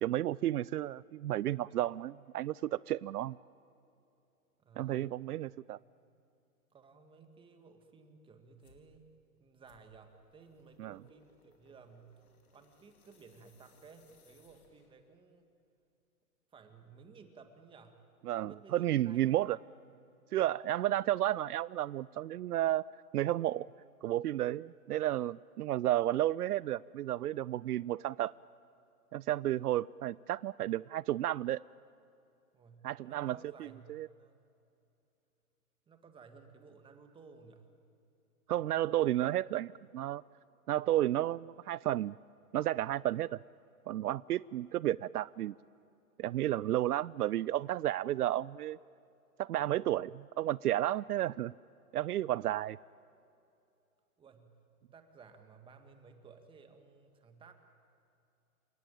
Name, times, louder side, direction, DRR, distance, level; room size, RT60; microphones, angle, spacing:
voice 1, 0.0-3.4 4.8-5.8 10.8-11.0 18.3-19.6 20.3-22.8 23.1-23.7 24.0-28.3 29.1-31.6 32.8-34.1 38.5-40.2 40.7-42.2 42.5-43.4 43.9-45.5 46.2-48.8 49.4-51.5 51.9-52.8, right 13 dB, 80° right, 21 dB, 0.5 m, -32 dB
voice 2, 4.6-5.4 6.7-9.1 9.4-12.1 12.5-15.5 16.5-18.0 18.4-19.6 32.5-34.4 35.9-37.7 41.0-41.1 54.2-54.6 54.9-57.5, right 5 dB, 10° right, 6 dB, 1.7 m, -57 dB
sound 1, 8.6-8.9 9.6-15.1, left 5 dB, 75° left, 4.4 m, -67 dB
28.5 x 17.5 x 9.0 m, 2.7 s
hypercardioid pair, 140°, 45 cm